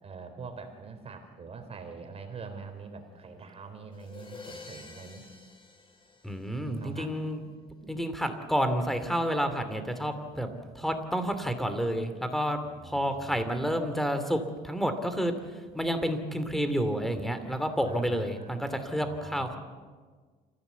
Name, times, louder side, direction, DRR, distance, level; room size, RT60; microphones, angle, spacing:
voice 1, 0.0-5.3 6.8-7.1 10.3-10.9 12.5-13.6 17.8-18.6 18.9-19.6, right 5 dB, 35° right, 5 dB, 3.6 m, -45 dB
sound 1, 3.9-6.9, left 3 dB, 30° left, 3.7 m, -48 dB
voice 2, 6.2-7.4 7.8-10.5 10.7-19.6, equal, ahead, 8 dB, 2.6 m, -30 dB
27.5 x 15.5 x 8.3 m, 1.5 s
cardioid pair, 110°, 17 cm